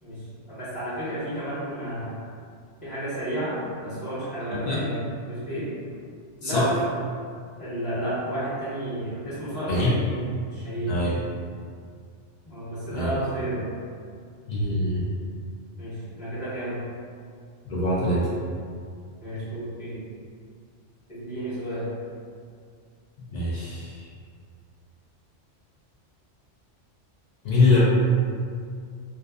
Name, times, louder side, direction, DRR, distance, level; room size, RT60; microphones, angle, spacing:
voice 1, 0.0-2.2 2.8-5.0 5.3-5.7 6.4-6.8 7.6-10.2 10.5-11.1 12.5-13.7 15.8-16.8 19.2-20.0 21.1-21.9, right 1 dB, 35° left, -12 dB, 1.0 m, -31 dB
voice 2, 4.5-4.8 6.4-6.7 9.7-9.9 10.9-11.2 12.9-13.2 14.5-15.1 17.6-18.3 23.2-24.1 27.4-27.8, left 2 dB, 55° left, -7 dB, 0.4 m, -24 dB
2.6 x 2.3 x 2.3 m, 2.2 s
omnidirectional pair, 1.2 m